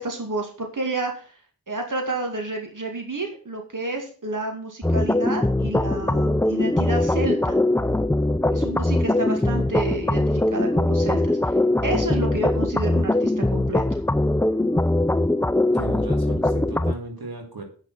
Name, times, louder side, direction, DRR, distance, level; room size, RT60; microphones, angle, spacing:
voice 1, 0.0-1.4 1.7-7.6 8.5-11.6 11.8-14.0, right 2 dB, 60° right, 2 dB, 2.3 m, -30 dB
sound 1, 4.8-16.9, left 1 dB, 5° left, 0.4 m, -21 dB
voice 2, 15.7-17.6, right 2 dB, 80° right, 2 dB, 2.6 m, -36 dB
8.9 x 6.1 x 7.1 m, 0.41 s
wide cardioid pair, 45°, 36 cm